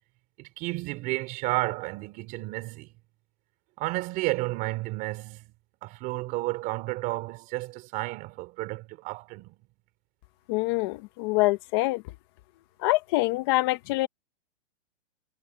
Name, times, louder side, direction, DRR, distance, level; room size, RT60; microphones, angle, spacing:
voice 1, 0.4-2.9 3.8-5.5 5.8-9.6, right 21 dB, 25° right, 3.6 m, -32 dB
voice 2, 10.5-12.0 12.8-14.1, left 20 dB, 20° left, 0.7 m, -25 dB
hypercardioid pair, 165°, 34 cm